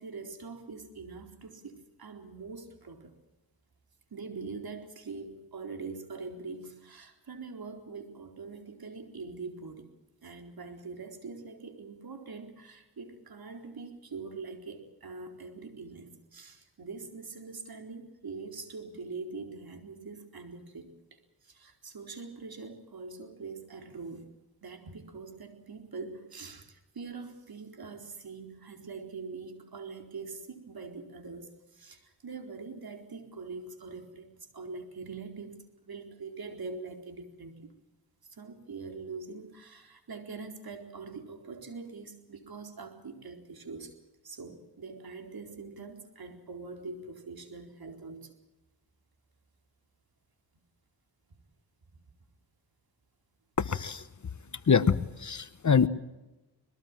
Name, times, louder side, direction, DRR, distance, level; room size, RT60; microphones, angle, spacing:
voice 1, 0.0-3.2 4.1-9.9 10.2-24.3 24.6-37.7 38.3-44.0 44.2-48.3 51.9-52.0, right 4 dB, 55° right, 5 dB, 4.2 m, -43 dB
voice 2, 53.6-54.0 54.7-55.9, left 6 dB, 40° left, 14 dB, 1.1 m, -25 dB
23.0 x 21.0 x 7.5 m, 1.0 s
cardioid pair, 65°, 43 cm